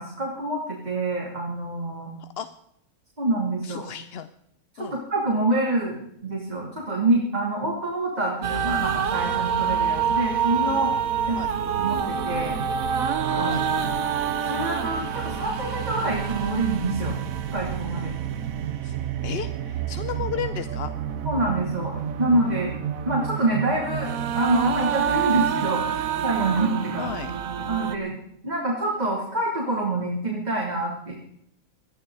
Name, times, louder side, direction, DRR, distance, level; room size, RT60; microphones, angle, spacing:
voice 1, 0.0-2.1 3.2-3.8 4.7-10.9 11.3-11.4 11.8-12.5 13.3-13.7 14.5-17.2 17.5-18.1 21.2-22.7 23.0-27.1 27.7-28.1 28.4-31.1, right 2 dB, 30° right, -2 dB, 3.2 m, -26 dB
voice 2, 3.6-4.3 4.8-5.0 11.4-11.5 13.4-13.6 18.8-19.0 19.2-20.9 27.0-27.3, left 8 dB, 55° left, 11 dB, 0.8 m, -33 dB
sound 1, 8.4-28.0, right 8 dB, 75° right, 1.4 m, -27 dB
20.5 x 14.5 x 4.0 m, 0.73 s
omnidirectional pair, 1.5 m